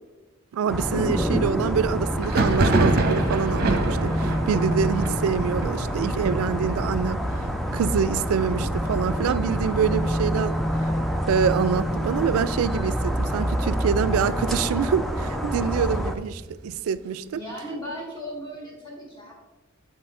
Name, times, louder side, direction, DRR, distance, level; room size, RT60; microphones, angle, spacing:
voice 1, 0.5-7.2 7.7-10.6 11.3-17.4, right 7 dB, 80° right, 0.3 m, -25 dB
sound 1, 0.7-16.2, equal, ahead, 0.4 m, -27 dB
Thunder, 2.2-11.7 12.0-12.6 12.9-13.9 14.3-16.0, right 2 dB, 45° right, 0.8 m, -28 dB
voice 2, 17.3-19.3, equal, 20° left, 2.1 m, -36 dB
7.9 x 4.2 x 3.6 m
head